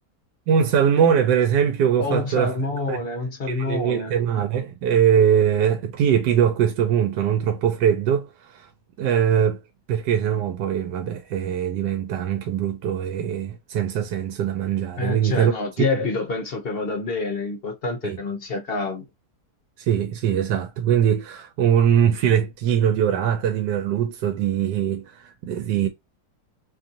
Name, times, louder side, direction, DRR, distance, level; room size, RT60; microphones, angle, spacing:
voice 1, 0.5-2.5 2.9-3.0 3.5-8.7 9.0-9.6 9.9-15.5 18.0-18.2 19.8-25.9, right 8 dB, 85° right, 1.2 m, -22 dB
voice 2, 2.0-4.1 15.0-19.0, left 3 dB, 45° left, 0.8 m, -27 dB
3.0 x 2.6 x 2.6 m
omnidirectional pair, 1.8 m